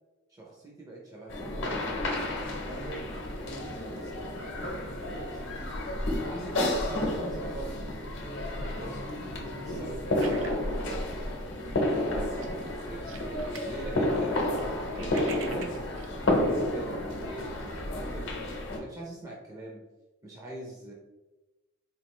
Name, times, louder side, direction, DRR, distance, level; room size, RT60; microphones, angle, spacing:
voice 1, 0.3-1.9 2.6-5.7 6.5-7.8 8.6-13.2 13.7-14.5 15.0-15.8 16.3-19.8 20.2-20.9, right 2 dB, 15° right, -3 dB, 0.5 m, -43 dB
sound 1, 1.3-18.8, left 1 dB, 60° left, 0.8 m, -31 dB
sound 2, 10.2-11.6 11.9-12.1 12.3-13.8 14.1-16.1, right 5 dB, 65° right, 0.5 m, -46 dB
4.3 x 2.4 x 3.0 m, 1.1 s
head